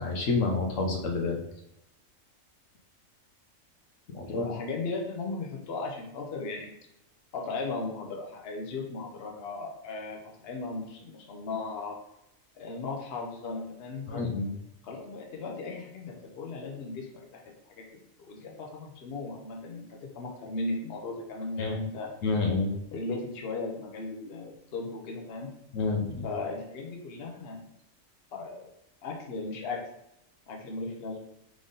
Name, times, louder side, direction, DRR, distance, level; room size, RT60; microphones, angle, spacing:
voice 1, 0.0-1.4 4.1-4.4 14.1-14.5 21.6-21.8 22.2-22.7 25.7-26.2, left 3 dB, 75° left, 1 dB, 1.1 m, -28 dB
voice 2, 4.2-6.7 7.3-12.0 12.6-14.2 14.8-22.1 22.9-25.5 26.2-27.6 28.3-28.7 29.0-29.8 30.5-31.2, left 3 dB, 55° left, 0 dB, 1.0 m, -37 dB
3.7 x 3.6 x 3.9 m, 0.84 s
omnidirectional pair, 1.4 m